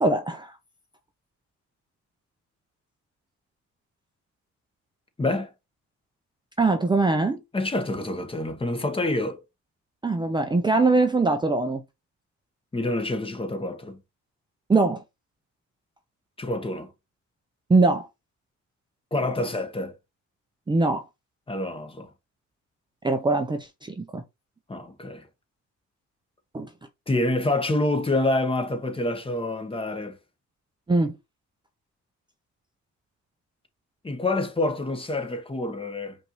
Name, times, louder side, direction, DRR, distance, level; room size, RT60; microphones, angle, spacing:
voice 1, 0.0-0.5 6.6-7.4 10.0-11.8 14.7-15.0 17.7-18.1 20.7-21.0 23.0-24.2 26.5-26.7 30.9-31.1, right 3 dB, 15° right, 0.5 m, -22 dB
voice 2, 5.2-5.5 7.5-9.4 12.7-14.0 16.4-16.9 19.1-19.9 21.5-22.1 24.7-25.3 27.1-30.2 34.0-36.2, left 2 dB, 20° left, 1.1 m, -27 dB
5.2 x 2.6 x 3.0 m
cardioid pair, 90°, 30 cm